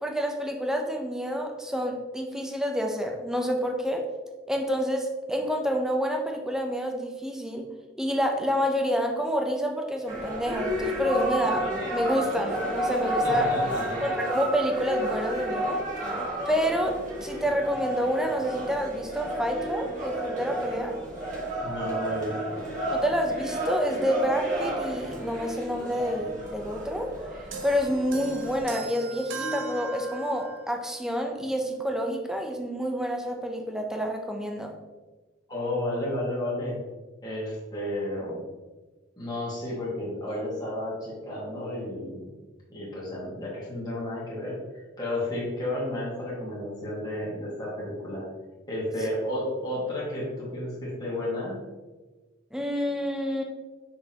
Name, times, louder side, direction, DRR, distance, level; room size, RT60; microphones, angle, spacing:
voice 1, 0.0-4.0 4.5-7.6 8.0-13.5 14.0-15.8 16.5-21.0 22.9-27.1 27.6-34.7 52.5-53.4, equal, 5° right, 2 dB, 0.6 m, -28 dB
sound 1, 10.1-28.6, equal, 40° right, 1.7 m, -31 dB
voice 2, 13.2-14.1 21.6-22.7 35.5-36.8 37.2-38.5 39.2-42.3 42.7-44.6 45.0-48.3 48.7-51.6, left 1 dB, 20° left, -7 dB, 1.8 m, -32 dB
sound 2, 27.5-30.7, right 2 dB, 85° right, 0.9 m, -37 dB
6.0 x 5.6 x 2.9 m, 1.3 s
head